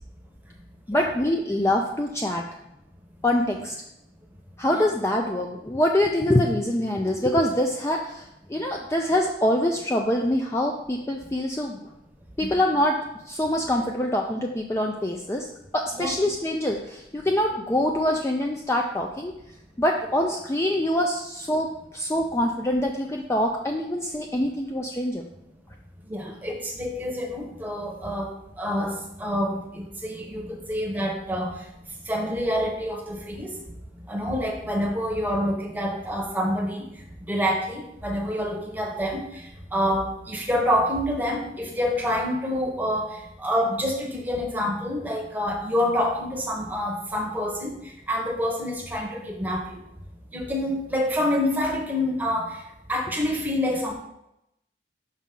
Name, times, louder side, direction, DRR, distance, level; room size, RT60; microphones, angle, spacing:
voice 1, 0.9-2.4 3.2-3.7 4.6-11.9 12.4-13.0 13.3-15.5 15.7-19.3 19.8-25.2, left 1 dB, 15° left, 1 dB, 0.4 m, -25 dB
voice 2, 26.1-31.5 32.1-33.5 34.1-36.9 37.2-39.4 39.7-47.7 48.1-49.8 50.3-52.6 52.9-53.9, equal, 10° right, 1 dB, 0.9 m, -27 dB
6.1 x 5.7 x 3.7 m, 0.85 s
head